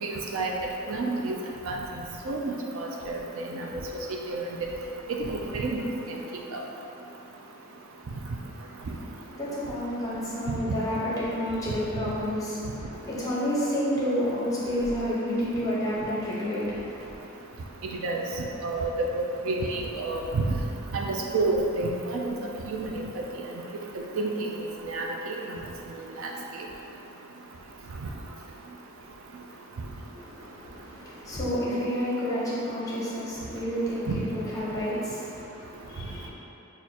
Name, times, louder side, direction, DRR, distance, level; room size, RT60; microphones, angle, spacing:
voice 1, 0.0-0.5 0.9-1.3 1.7-1.8 2.3-3.8 4.3-4.7 5.2-5.8 6.5-6.6 18.0-18.2 18.6-20.4 20.9-22.3 22.7-23.1 24.2-24.5 24.9-25.4 26.2-26.3 34.1-34.2, right 3 dB, 65° right, 0 dB, 0.4 m, -29 dB
voice 2, 9.2-17.2 30.1-36.3, equal, 15° left, -8 dB, 0.9 m, -30 dB
6.1 x 2.4 x 2.8 m, 2.8 s
head